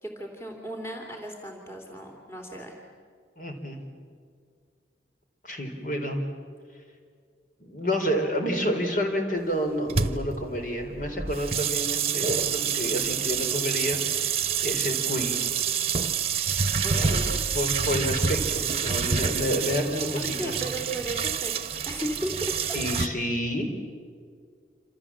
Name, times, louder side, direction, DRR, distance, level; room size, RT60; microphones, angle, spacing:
voice 1, 0.0-2.8 16.8-17.4 20.2-22.8, right 1 dB, 15° left, 1 dB, 3.0 m, -35 dB
voice 2, 3.4-3.8 5.4-6.2 7.6-14.4 14.6-15.4 16.3-16.6 16.9-17.2 17.5-20.6 22.7-23.7, equal, 45° left, 4 dB, 4.2 m, -29 dB
sound 1, 9.9-23.1, right 7 dB, 35° right, 1.2 m, -27 dB
28.0 x 27.0 x 7.5 m, 2.1 s
head